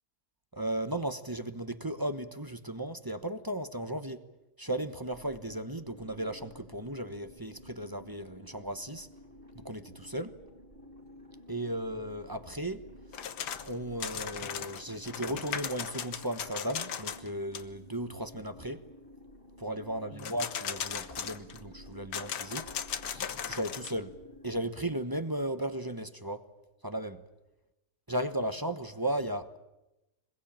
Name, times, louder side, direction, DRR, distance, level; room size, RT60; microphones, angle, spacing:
voice 1, 0.5-4.2 4.6-9.1 9.5-10.3 11.5-12.8 13.1-13.3 13.7-18.8 19.6-22.7 23.1-24.1 24.4-26.5 26.8-27.2 28.1-29.6, right 1 dB, 15° right, 0.9 m, -35 dB
sound 1, 5.1-24.7, left 1 dB, 30° right, 5.3 m, -53 dB
sound 2, 13.1-13.7 14.0-17.3 17.5-17.6 20.2-21.6 22.1-24.0, left 8 dB, 75° left, 1.7 m, -37 dB
24.5 x 21.5 x 8.9 m
omnidirectional pair, 1.8 m